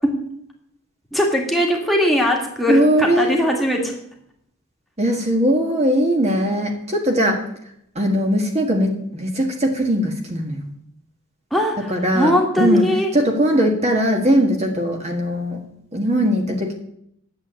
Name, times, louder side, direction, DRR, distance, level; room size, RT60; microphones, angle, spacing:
voice 1, 1.1-4.0 11.5-13.1, equal, ahead, -1 dB, 1.9 m, -20 dB
voice 2, 2.7-3.3 5.0-7.4 7.9-10.7 11.8-12.8 13.1-15.6 15.9-16.7, equal, 30° right, 2 dB, 1.6 m, -20 dB
9.6 x 7.5 x 8.7 m, 0.73 s
head